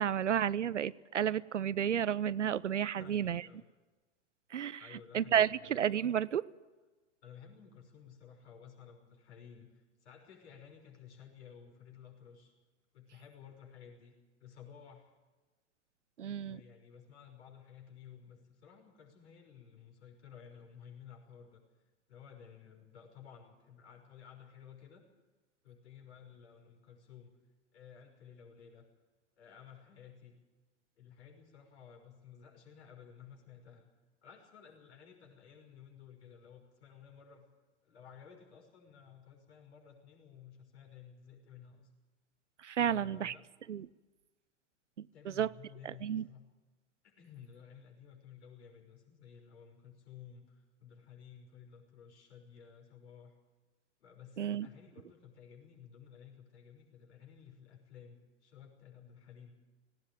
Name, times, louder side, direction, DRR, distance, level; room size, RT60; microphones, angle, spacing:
voice 1, 0.0-3.4 4.5-4.8 5.1-6.5 16.2-16.6 42.6-43.3 43.7-43.9 45.0-45.5 45.8-46.3 54.4-54.7, right 9 dB, 80° right, 20 dB, 0.6 m, -32 dB
voice 2, 3.0-3.6 4.8-5.7 7.2-12.5 12.9-14.1 14.4-15.1 16.2-25.0 25.6-27.3 27.7-28.9 29.4-30.4 31.0-33.9 34.2-37.4 37.8-41.9 42.8-43.4 45.1-46.4 47.0-53.3 54.0-59.5, left 7 dB, 70° left, 3 dB, 6.1 m, -55 dB
18.5 x 18.0 x 9.0 m, 1.2 s
figure-of-eight pair, 95°, 35 cm